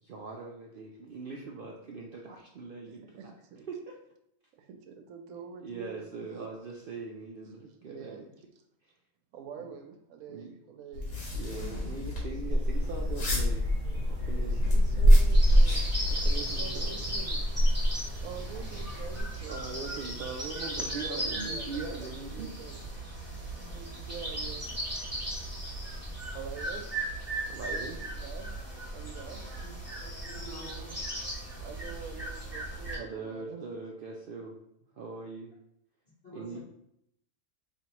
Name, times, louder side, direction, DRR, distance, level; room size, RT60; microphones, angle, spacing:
voice 1, 0.0-3.3 3.7-3.9 5.6-8.3 9.6-9.7 10.3-10.5 11.3-13.6 14.2-14.9 16.1-17.1 19.5-22.6 27.5-28.0 33.0-34.5 35.0-35.5 36.3-36.6, right 4 dB, 70° right, -1 dB, 0.5 m, -41 dB
voice 2, 2.9-3.6 4.6-6.5 7.8-8.2 9.3-11.1 14.4-15.9 16.5-17.5 18.2-19.6 20.8-22.8 23.6-24.8 26.3-26.9 28.1-28.5 28.9-29.4 31.6-33.6, right 6 dB, 85° right, 5 dB, 1.1 m, -46 dB
sound 1, 10.9-16.4, left 2 dB, 80° left, 1.7 m, -33 dB
sound 2, 11.9-19.2, equal, 35° right, 0.8 m, -25 dB
sound 3, 15.3-33.0, right 1 dB, 10° right, 1.4 m, -37 dB
voice 3, 30.0-31.3 36.2-36.6, equal, 50° left, -12 dB, 2.1 m, -47 dB
4.3 x 3.1 x 2.9 m, 0.77 s
omnidirectional pair, 1.4 m